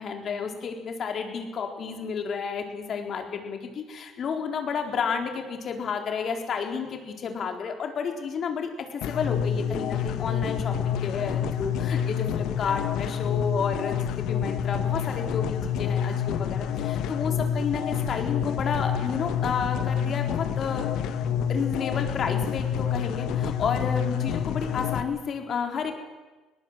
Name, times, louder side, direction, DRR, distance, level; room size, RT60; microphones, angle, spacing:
voice 1, 0.0-20.9 21.5-25.9, left 6 dB, 55° left, 4 dB, 4.2 m, -31 dB
sound 1, 9.0-25.0, left 8 dB, 70° left, 1.6 m, -28 dB
21.5 x 19.0 x 7.7 m, 1.2 s
supercardioid pair, 70°, 0 cm